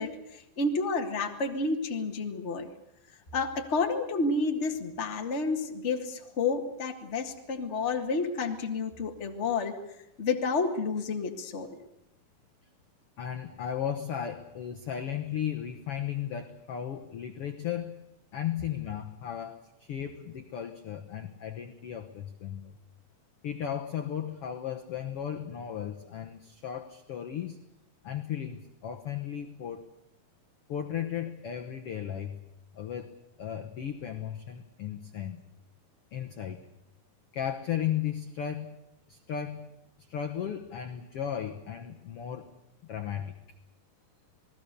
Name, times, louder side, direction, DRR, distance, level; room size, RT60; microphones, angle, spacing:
voice 1, 0.0-2.7 3.3-9.7 10.2-11.8, left 3 dB, 30° left, 4 dB, 1.3 m, -30 dB
voice 2, 13.2-18.0 18.3-22.7 23.4-27.6 28.0-29.9 30.7-32.4 32.7-33.1 33.4-35.4 36.1-36.6 37.3-38.8 39.1-39.7 40.1-42.5 42.9-43.4, left 9 dB, 65° left, 6 dB, 1.5 m, -35 dB
28.5 x 20.0 x 6.8 m, 0.83 s
omnidirectional pair, 4.1 m